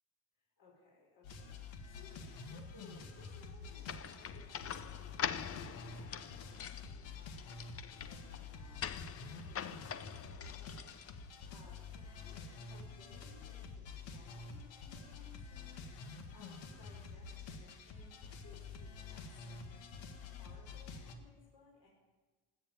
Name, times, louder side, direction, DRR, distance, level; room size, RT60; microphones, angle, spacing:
voice 1, 0.6-8.9 9.4-15.8 16.3-19.9 20.3-21.9, left 3 dB, 50° left, -5 dB, 5.1 m, -62 dB
sound 1, 1.2-21.2, left 4 dB, 70° left, 1.9 m, -49 dB
sound 2, 3.8-11.5, left 8 dB, 30° left, 0.6 m, -44 dB
18.5 x 8.4 x 9.0 m, 1.3 s
cardioid pair, 135°, 47 cm